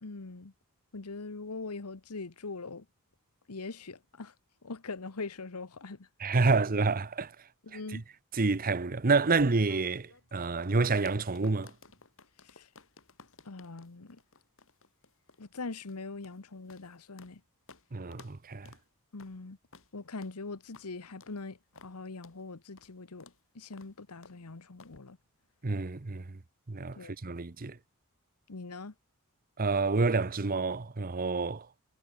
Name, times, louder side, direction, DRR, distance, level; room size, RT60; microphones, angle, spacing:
voice 1, 0.0-0.5 0.9-2.9 3.5-4.3 4.6-6.1 6.5-6.6 7.6-8.0 12.4-12.7 13.4-14.2 15.4-17.4 19.1-19.6 19.9-25.2 26.9-27.1 28.5-28.9, left 3 dB, 85° left, 1.2 m, -42 dB
voice 2, 6.2-7.3 8.3-11.7 17.9-18.7 25.6-26.4 26.7-27.8 29.6-31.7, right 3 dB, 40° right, 0.9 m, -28 dB
sound 1, 9.1-17.4 17.7-17.8 18.1-18.4 18.7-18.8 19.2-19.4 19.7-19.9 20.2-20.4 20.7-20.9 21.2-21.4 21.8-21.9 22.2-22.4 22.8-22.9 23.2-23.4 23.7-23.9 24.2-24.4 24.8-25.0, left 4 dB, 65° left, 5.3 m, -56 dB
head